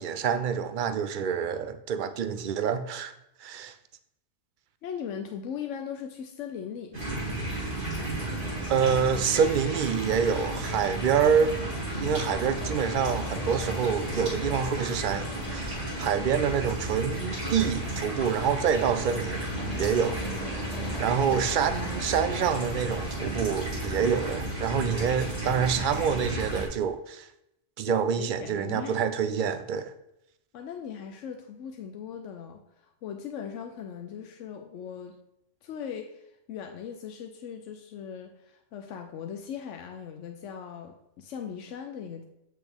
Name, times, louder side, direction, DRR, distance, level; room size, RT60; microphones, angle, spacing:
voice 1, 0.0-3.1 3.4-3.7 8.7-11.6 12.0-19.5 19.8-20.7 21.0-27.3 27.8-29.9, right 7 dB, 55° right, 12 dB, 0.6 m, -27 dB
voice 2, 4.8-7.6 20.4-20.7 27.8-29.0 30.5-35.2 35.6-42.2, left 8 dB, 90° left, 5 dB, 1.0 m, -39 dB
sound 1, 6.9-26.6, right 1 dB, 85° right, 2.8 m, -33 dB
sound 2, 7.2-24.3, left 4 dB, 40° left, 0.6 m, -43 dB
8.0 x 6.3 x 3.5 m, 0.85 s
omnidirectional pair, 1.2 m